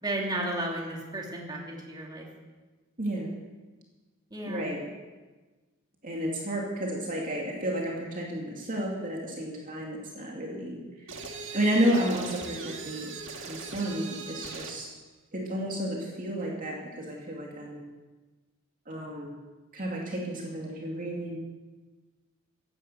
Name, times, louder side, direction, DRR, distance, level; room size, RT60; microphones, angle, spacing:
voice 1, 0.0-2.3 4.3-4.7, right 1 dB, 20° right, -2 dB, 2.9 m, -33 dB
voice 2, 3.0-3.3 4.4-4.9 6.0-11.2 11.5-13.2 13.5-14.9 15.3-17.9 18.9-19.3 19.7-21.5, equal, 40° right, -2 dB, 2.5 m, -31 dB
sound 1, 11.1-14.8, right 4 dB, 60° right, 1.9 m, -40 dB
16.5 x 10.5 x 6.8 m, 1.3 s
head